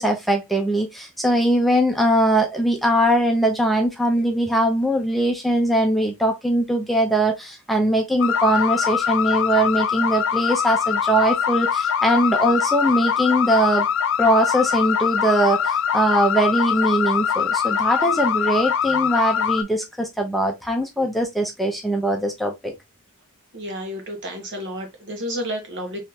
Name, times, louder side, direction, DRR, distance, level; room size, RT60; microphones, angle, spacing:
voice 1, 0.0-13.9 14.2-22.7, right 1 dB, ahead, 0.6 m, -21 dB
sound 1, 8.2-19.6, left 7 dB, 65° left, 0.4 m, -22 dB
voice 2, 23.5-26.0, equal, 55° right, 1.4 m, -31 dB
3.7 x 3.2 x 2.8 m
head